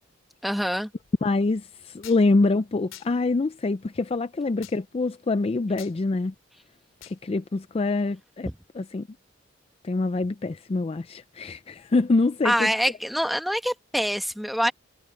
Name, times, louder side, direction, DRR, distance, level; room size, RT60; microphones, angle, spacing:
voice 1, 0.4-0.9 12.4-14.7, equal, ahead, 1.3 m, -25 dB
voice 2, 1.2-6.3 7.1-9.1 9.8-12.7, left 3 dB, 30° left, 0.4 m, -25 dB
sound 1, 2.0-2.2 2.9-3.1 4.6-4.8 5.8-5.9 7.0-7.2, left 12 dB, 90° left, 3.1 m, -44 dB
head